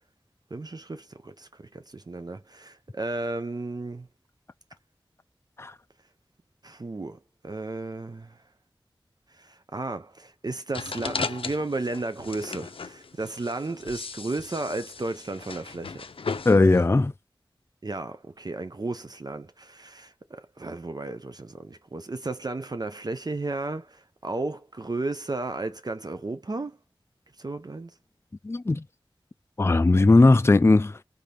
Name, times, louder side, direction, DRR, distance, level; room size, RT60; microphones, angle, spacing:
voice 1, 0.5-4.1 6.6-7.2 7.4-8.4 9.3-16.0 17.8-26.8 27.4-27.9, right 2 dB, 45° right, 0.6 m, -34 dB
sound 1, 10.7-16.8, left 4 dB, 85° left, 0.5 m, -36 dB
voice 2, 16.5-17.1 28.4-28.8 29.6-30.9, left 2 dB, 30° left, 0.4 m, -18 dB
3.5 x 3.4 x 4.0 m
wide cardioid pair, 40°, 9 cm